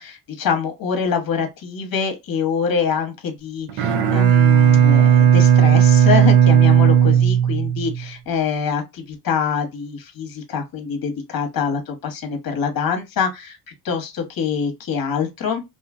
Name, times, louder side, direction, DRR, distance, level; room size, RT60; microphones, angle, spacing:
voice 1, 0.0-13.6 13.8-15.6, left 6 dB, 45° left, 1.0 m, -25 dB
Bowed string instrument, 3.7-8.0, right 9 dB, 75° right, 0.7 m, -14 dB
2.6 x 2.4 x 2.4 m
supercardioid pair, 65°, 49 cm